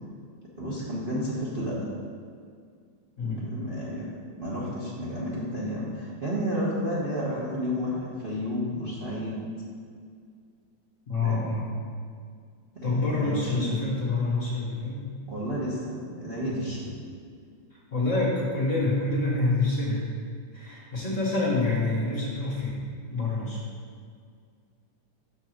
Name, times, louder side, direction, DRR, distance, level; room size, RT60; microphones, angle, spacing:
voice 1, 0.6-1.8 3.2-4.1 4.4-9.4 11.2-11.5 12.7-13.7 15.3-16.9, equal, 35° right, -7 dB, 0.9 m, -31 dB
voice 2, 3.2-3.5 11.1-11.7 12.8-15.1 17.9-20.0 20.5-22.8 23.1-23.6, left 2 dB, 45° left, -5 dB, 1.3 m, -27 dB
6.2 x 4.0 x 6.3 m, 2.1 s
omnidirectional pair, 2.2 m